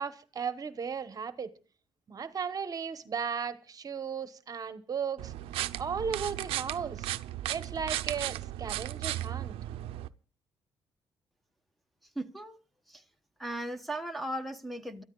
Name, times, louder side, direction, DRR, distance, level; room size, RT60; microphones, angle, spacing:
voice 1, 0.0-1.5 2.1-5.3 5.8-7.1 7.5-9.5, right 6 dB, 40° right, 1.0 m, -35 dB
sound 1, 5.2-10.1, right 14 dB, 85° right, 0.6 m, -35 dB
voice 2, 12.2-12.6 12.9-13.0 13.4-15.0, right 1 dB, ahead, 1.1 m, -37 dB
28.0 x 13.5 x 2.3 m
cardioid pair, 95°, 9 cm